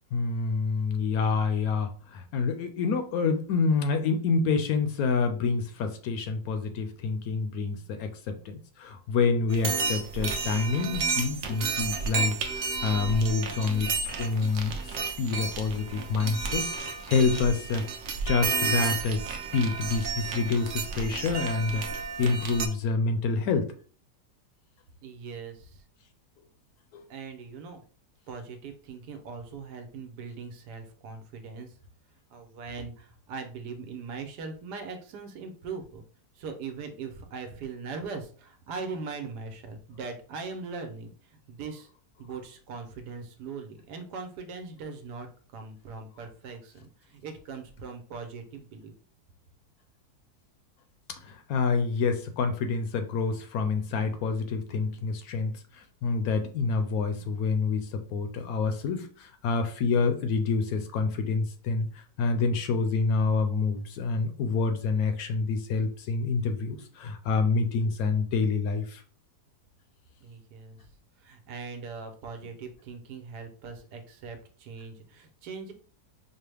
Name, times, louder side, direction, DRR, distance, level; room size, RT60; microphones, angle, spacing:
voice 1, 0.1-12.4 12.8-14.7 15.2-17.8 18.2-19.2 19.5-23.7 26.9-27.0 51.1-69.0, left 4 dB, 70° left, 8 dB, 1.0 m, -27 dB
sound 1, 9.5-22.7, right 5 dB, 60° right, 0.9 m, -32 dB
voice 2, 25.0-25.8 27.1-27.8 28.3-31.7 32.3-36.0 36.4-41.9 42.2-48.9 70.2-70.8 71.2-75.7, right 4 dB, 85° right, 6 dB, 1.3 m, -40 dB
5.3 x 2.1 x 3.3 m, 0.43 s
omnidirectional pair, 1.7 m